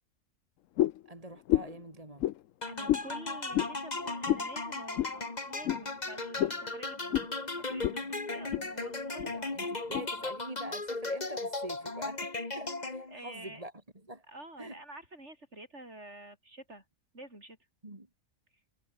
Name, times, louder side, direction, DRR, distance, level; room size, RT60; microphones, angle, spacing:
sound 1, 0.8-1.1 1.5-1.8 2.2-2.4 2.9-3.1 3.5-3.7 4.3-4.5 5.0-5.1 5.6-5.8 6.4-6.6 7.1-7.3 7.8-8.0 8.3-8.7 9.2-9.3 9.9-10.1, left 13 dB, 75° left, 1.0 m, -29 dB
voice 1, 1.0-2.3 9.5-13.7 14.0-14.2 14.6-14.8 17.8-18.1, right 1 dB, 25° right, 3.4 m, -45 dB
sound 2, 2.6-13.3, left 3 dB, 30° left, 2.3 m, -37 dB
voice 2, 2.6-9.8 10.1-10.2 13.1-13.6 14.3-16.8 17.1-17.6, right 1 dB, 55° right, 8.4 m, -49 dB
omnidirectional pair, 1.4 m